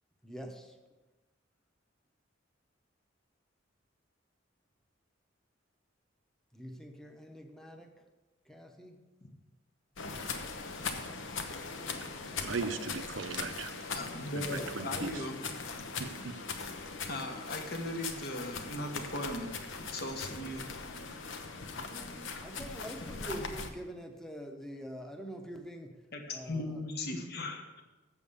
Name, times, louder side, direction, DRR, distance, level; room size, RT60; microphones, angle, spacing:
voice 1, 0.2-0.7 6.5-8.0 8.5-9.0 12.1-12.8 14.4-14.8 20.7-21.2 21.7-26.0 26.3-26.8, equal, 5° left, 3 dB, 0.9 m, -45 dB
sound 1, 10.0-23.7, left 4 dB, 85° left, 0.9 m, -40 dB
voice 2, 12.4-13.7 14.4-15.1 16.0-16.4, right 4 dB, 75° right, 9 dB, 0.6 m, -38 dB
voice 3, 13.9-15.4 17.1-20.7 26.1-27.8, left 1 dB, 55° left, 3 dB, 1.3 m, -38 dB
7.4 x 7.1 x 6.8 m, 1.2 s
head